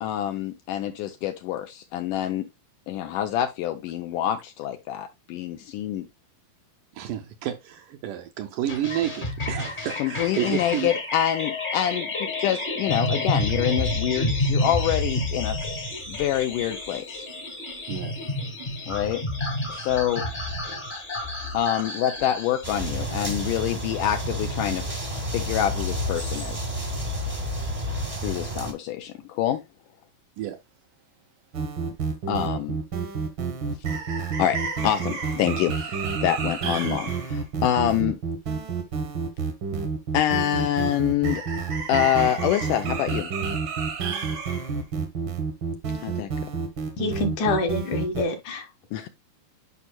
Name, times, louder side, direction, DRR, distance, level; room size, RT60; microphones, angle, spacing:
voice 1, 0.0-2.5 2.9-6.1 10.0-17.2 18.9-19.2 19.7-20.2 21.5-26.6 28.2-29.6 32.3-32.8 34.4-34.6 34.8-38.2 40.1-41.4 41.9-43.3 46.0-46.3 48.9-49.1, left 11 dB, 80° left, 2.0 m, -26 dB
voice 2, 6.9-10.9 17.9-18.2 19.7-19.9 30.4-30.6, right 12 dB, 80° right, 2.0 m, -30 dB
sound 1, 8.7-28.1, left 2 dB, 30° left, 0.9 m, -30 dB
sound 2, 22.6-28.7, equal, 20° right, 0.8 m, -30 dB
sound 3, 31.5-48.2, right 5 dB, 60° right, 1.3 m, -29 dB
voice 3, 47.0-48.7, left 2 dB, 65° left, 2.4 m, -26 dB
11.0 x 5.2 x 2.2 m
omnidirectional pair, 4.2 m